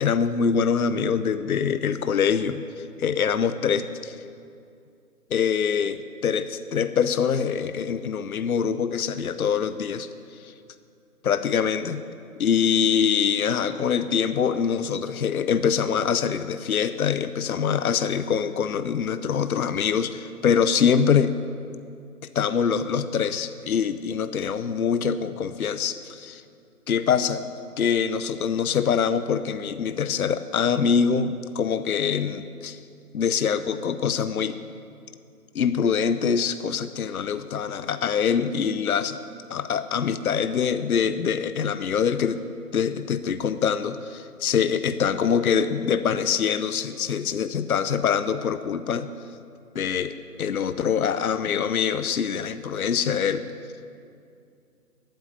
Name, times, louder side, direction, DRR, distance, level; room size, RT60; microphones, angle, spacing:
voice 1, 0.0-4.2 5.3-10.1 11.2-12.0 12.4-21.3 22.3-26.4 26.9-27.5 27.8-32.8 33.1-34.6 35.5-39.2 39.5-42.4 42.7-49.1 49.7-53.4, left 7 dB, 65° left, 12 dB, 0.8 m, -24 dB
13.0 x 9.0 x 8.6 m, 2.4 s
hypercardioid pair, 160°, 46 cm